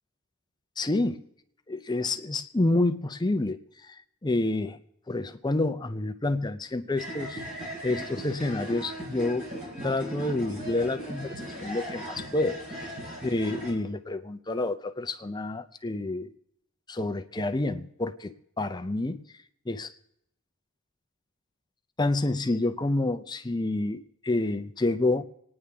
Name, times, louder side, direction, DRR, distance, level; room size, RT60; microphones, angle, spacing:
voice 1, 0.8-1.3 1.7-4.8 5.1-7.4 7.8-9.5 9.8-13.0 13.2-16.3 16.9-19.2 19.7-19.9 22.0-25.2, left 2 dB, 20° left, 9 dB, 0.5 m, -28 dB
sound 1, 7.0-13.7, right 1 dB, 35° right, 5.1 m, -38 dB
27.0 x 9.8 x 3.5 m, 0.77 s
head